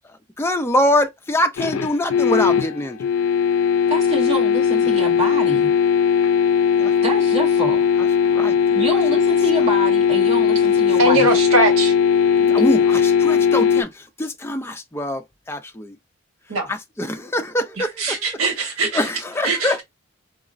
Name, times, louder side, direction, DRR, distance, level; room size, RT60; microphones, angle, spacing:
voice 1, 0.4-3.1 4.8-5.0 6.8-6.9 8.3-8.8 12.5-16.0 16.7-18.2 18.9-19.8, left 1 dB, 10° left, 0.4 m, -24 dB
sound 1, 1.6-13.8, left 7 dB, 80° left, 0.4 m, -18 dB
voice 2, 3.9-5.7 7.0-7.8 8.7-11.3, right 1 dB, 30° right, 0.7 m, -26 dB
voice 3, 11.0-11.9 16.5-16.7 18.0-19.0 19.4-19.8, right 2 dB, 90° right, 1.4 m, -20 dB
4.8 x 2.0 x 2.5 m
head